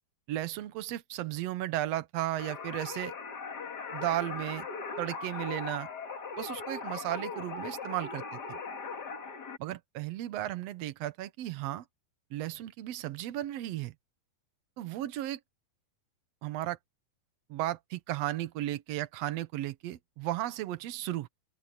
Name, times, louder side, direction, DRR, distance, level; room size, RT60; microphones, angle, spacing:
voice 1, 0.3-3.1 3.9-4.7 5.0-5.9 6.4-8.6 9.6-11.8 12.3-13.9 14.8-15.4 16.4-16.8 17.5-21.3, right 14 dB, 80° right, 1.5 m, -35 dB
sound 1, 2.4-9.6, left 5 dB, 40° left, 1.7 m, -39 dB
open air
omnidirectional pair, 4.1 m